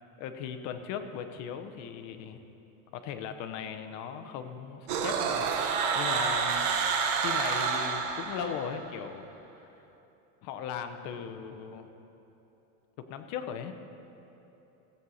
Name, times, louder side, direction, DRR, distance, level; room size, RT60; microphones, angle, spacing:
voice 1, 0.2-2.4 2.9-5.5 5.9-6.9 7.2-9.3 9.6-9.7 10.4-11.9 13.0-13.7, left 8 dB, 40° left, 8 dB, 0.7 m, -38 dB
sound 1, 4.9-8.9, right 6 dB, 45° right, 0.9 m, -29 dB
16.0 x 7.9 x 4.1 m, 3.0 s
supercardioid pair, 155°, 43 cm